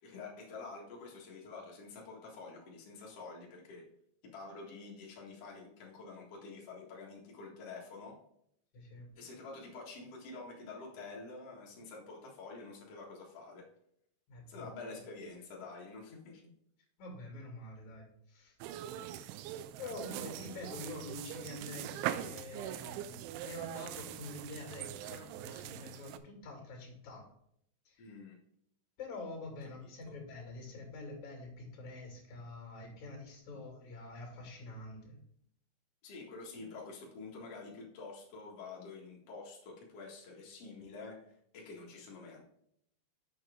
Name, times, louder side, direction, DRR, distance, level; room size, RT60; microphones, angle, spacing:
voice 1, 0.0-3.9 4.2-8.2 9.1-13.7 14.5-16.4 28.0-28.3 29.8-29.9 36.0-41.2 41.5-42.4, left 3 dB, 70° left, -3 dB, 1.4 m, -48 dB
voice 2, 8.7-9.1 14.3-14.7 17.0-18.6 19.1-19.3 19.8-27.3 27.8-28.1 29.0-35.2, left 2 dB, 45° left, 2 dB, 2.9 m, -46 dB
sound 1, 18.6-26.2, right 12 dB, 85° right, 2.8 m, -42 dB
7.4 x 7.0 x 3.6 m, 0.72 s
omnidirectional pair, 5.8 m